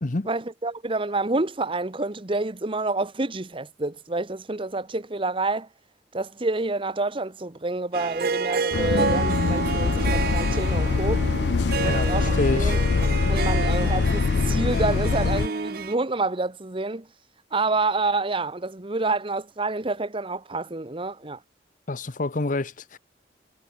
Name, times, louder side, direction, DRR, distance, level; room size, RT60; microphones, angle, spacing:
voice 1, 0.2-5.7 6.1-11.3 11.8-12.8 13.3-17.1 17.5-21.4, right 3 dB, 30° right, 1.2 m, -28 dB
Harp, 7.9-15.9, right 5 dB, 55° right, 0.7 m, -29 dB
Bus, 8.7-15.5, left 4 dB, 65° left, 0.4 m, -23 dB
voice 2, 11.8-12.8 21.9-23.0, left 2 dB, 45° left, 0.9 m, -27 dB
head